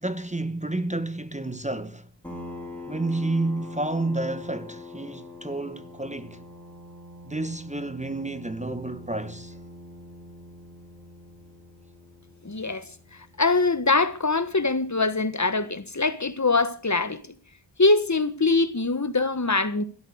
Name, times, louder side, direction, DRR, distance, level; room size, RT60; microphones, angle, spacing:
voice 1, 0.0-2.1 2.9-6.4 7.2-9.6, right 2 dB, 15° right, 1.2 m, -30 dB
sound 1, 2.2-15.5, left 2 dB, 5° left, 5.3 m, -44 dB
voice 2, 12.4-12.9 13.4-17.2 17.8-19.8, left 3 dB, 35° left, 1.7 m, -23 dB
16.5 x 13.0 x 6.5 m
cardioid pair, 45°, 46 cm